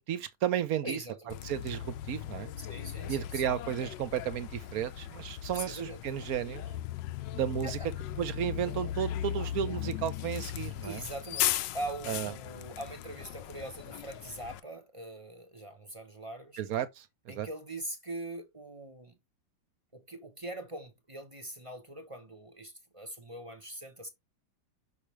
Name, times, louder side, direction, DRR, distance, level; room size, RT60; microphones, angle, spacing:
voice 1, 0.1-1.0 1.4-2.5 3.1-6.6 7.3-7.8 8.2-11.0 12.1-12.3 16.6-17.5, right 10 dB, 60° right, 1.1 m, -33 dB
voice 2, 0.8-1.4 2.6-3.5 5.5-6.0 7.6-7.9 10.8-16.6 17.3-19.1 19.9-24.1, right 1 dB, 25° right, 0.8 m, -42 dB
Bus, 1.3-14.6, left 12 dB, 80° left, 1.3 m, -37 dB
6.3 x 5.1 x 3.2 m
omnidirectional pair, 1.9 m